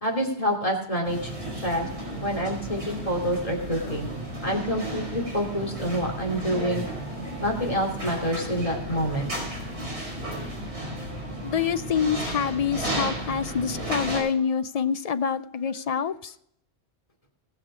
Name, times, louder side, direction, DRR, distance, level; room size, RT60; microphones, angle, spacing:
voice 1, 0.0-1.3 1.6-1.9 2.2-4.1 4.4-6.9 7.4-9.3, equal, 30° left, 0 dB, 2.8 m, -27 dB
sound 1, 1.0-14.2, right 1 dB, 80° right, 4.9 m, -34 dB
voice 2, 11.4-16.3, left 7 dB, 50° left, 13 dB, 0.5 m, -26 dB
19.0 x 6.5 x 4.9 m, 0.72 s
omnidirectional pair, 1.1 m